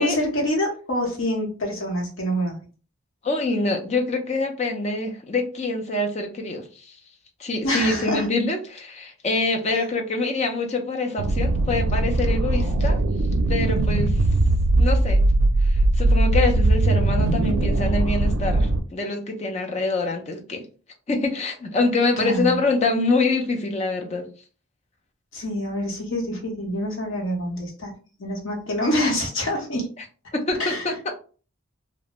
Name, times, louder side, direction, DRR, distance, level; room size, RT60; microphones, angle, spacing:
voice 1, 0.0-2.6 7.6-8.3 22.2-22.6 25.3-27.9 28.2-29.9 30.6-30.9, equal, 65° left, -1 dB, 0.9 m, -26 dB
voice 2, 3.2-7.0 7.4-13.0 13.5-14.1 14.8-15.2 15.6-20.6 21.1-24.3 30.3-31.1, left 3 dB, 30° left, 3 dB, 0.4 m, -25 dB
sound 1, 11.2-18.8, right 2 dB, 85° right, 0.4 m, -20 dB
2.5 x 2.0 x 3.0 m, 0.38 s
head